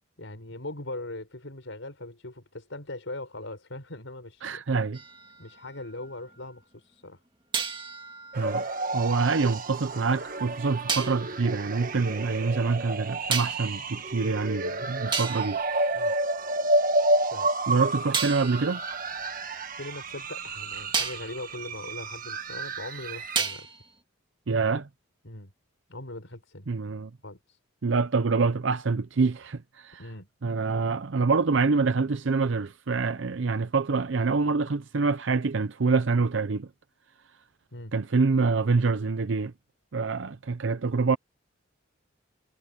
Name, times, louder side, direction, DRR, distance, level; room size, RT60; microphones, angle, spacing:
voice 1, 0.2-4.6 5.4-7.2 15.9-16.2 17.3-17.5 19.8-23.7 25.2-25.5 25.9-26.7 27.2-27.6 30.0-30.3 37.7-37.9, left 2 dB, 75° left, 5.0 m, -40 dB
voice 2, 4.4-5.0 8.4-8.6 8.9-15.6 17.7-18.8 24.5-24.9 26.7-27.1 27.8-30.1 30.4-36.7 37.9-39.5 39.9-41.2, right 4 dB, 70° right, 0.6 m, -26 dB
sound 1, 4.9-6.4 7.5-9.7 10.9-11.3 13.3-13.8 14.6-14.7 15.1-16.7 18.1-20.3 20.9-21.4 23.4-23.9, right 5 dB, 25° right, 2.1 m, -34 dB
sound 2, 8.3-23.4, right 2 dB, 45° right, 1.6 m, -30 dB
head